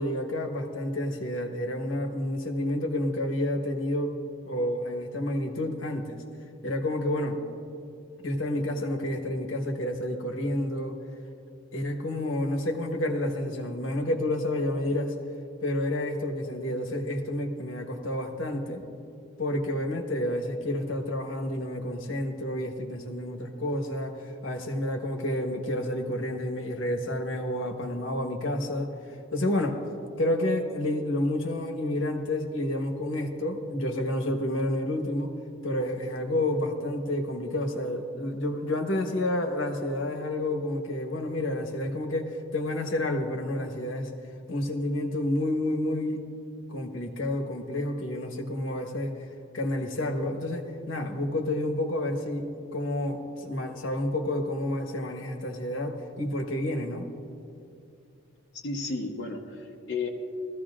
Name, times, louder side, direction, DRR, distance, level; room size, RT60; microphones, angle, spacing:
voice 1, 0.0-4.1 4.4-6.2 6.6-7.4 8.2-10.9 11.7-15.1 15.6-18.8 19.4-28.9 29.3-29.8 30.2-35.3 35.6-44.1 44.5-46.3 46.7-49.1 49.5-57.1, left 1 dB, 75° left, 4 dB, 1.3 m, -29 dB
voice 2, 58.5-60.1, left 3 dB, 60° left, -1 dB, 0.8 m, -33 dB
19.5 x 14.5 x 2.5 m, 2.6 s
head